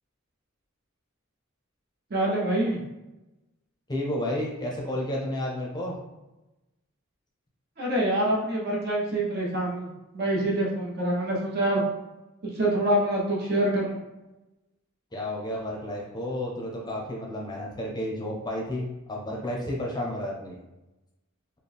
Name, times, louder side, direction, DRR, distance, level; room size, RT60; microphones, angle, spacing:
voice 1, 2.1-2.8 7.8-11.8 12.5-14.0, right 1 dB, 50° right, -4 dB, 1.0 m, -26 dB
voice 2, 3.9-6.0 15.1-20.5, left 1 dB, 20° left, -2 dB, 0.6 m, -31 dB
4.2 x 2.2 x 3.4 m, 0.99 s
head